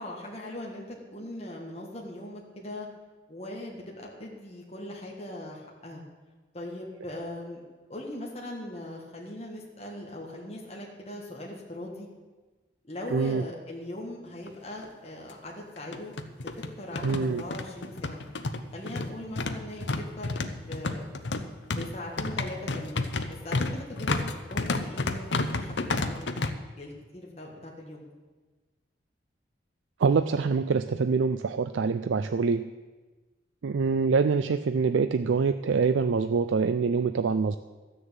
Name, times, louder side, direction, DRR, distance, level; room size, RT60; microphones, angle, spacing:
voice 1, 0.0-2.9 3.3-6.0 6.5-7.6 7.9-12.1 12.9-16.5 16.8-18.2 18.7-19.8 20.2-21.1 21.7-26.1 26.8-28.1, left 1 dB, 35° left, -2 dB, 1.7 m, -40 dB
voice 2, 13.1-13.4 17.0-17.4 30.0-32.7 33.6-37.6, right 5 dB, 85° right, 10 dB, 0.4 m, -25 dB
sound 1, 14.5-14.6 14.8-14.9 15.8-26.5, left 3 dB, 70° left, 0.9 m, -31 dB
13.0 x 6.7 x 8.9 m, 1.3 s
head